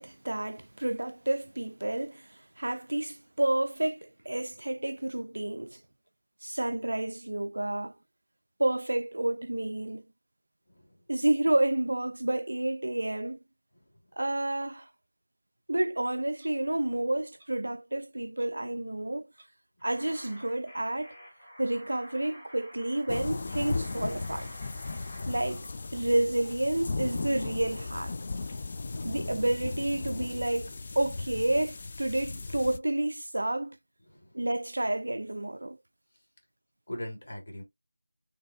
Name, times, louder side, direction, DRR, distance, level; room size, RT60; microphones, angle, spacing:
voice 1, 0.0-5.8 6.4-8.0 8.6-10.1 11.1-13.4 14.2-14.9 15.7-19.3 19.8-21.1 21.6-24.5 25.3-28.2 29.0-33.8 34.3-35.8, right 1 dB, 70° right, 0.3 m, -30 dB
voice 2, 10.7-11.0 13.7-13.9 34.1-34.5 36.9-37.6, left 1 dB, 55° left, 1.7 m, -42 dB
Clock, 16.4-16.5 17.4-17.5 18.4-18.6 18.9-19.0 19.3-19.5 20.3-20.5, right 2 dB, 25° right, 1.8 m, -59 dB
sound 1, 19.8-25.7, equal, 5° left, 1.8 m, -51 dB
sound 2, 23.1-32.8, left 3 dB, 35° left, 0.3 m, -36 dB
4.5 x 2.8 x 2.4 m
figure-of-eight pair, 170°, 0 cm